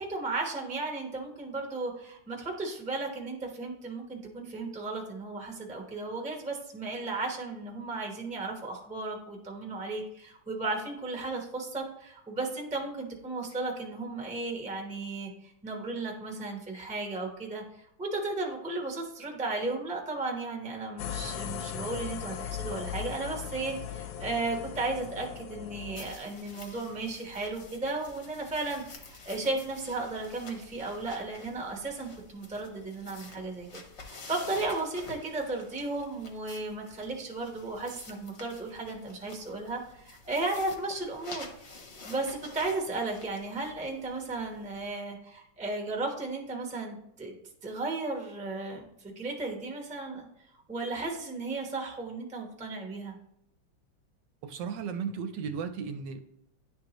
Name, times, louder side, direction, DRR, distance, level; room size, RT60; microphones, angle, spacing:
voice 1, 0.0-15.3 15.6-17.6 18.0-41.5 42.0-47.4 47.6-50.3 50.7-53.1, right 3 dB, 5° right, 1 dB, 0.5 m, -35 dB
sound 1, 21.0-26.1, left 9 dB, 90° left, 1.4 m, -38 dB
sound 2, 25.9-44.9, left 3 dB, 50° left, 0.8 m, -49 dB
voice 2, 54.4-56.2, right 6 dB, 75° right, 8 dB, 1.2 m, -35 dB
10.5 x 3.6 x 2.9 m, 0.77 s
omnidirectional pair, 2.1 m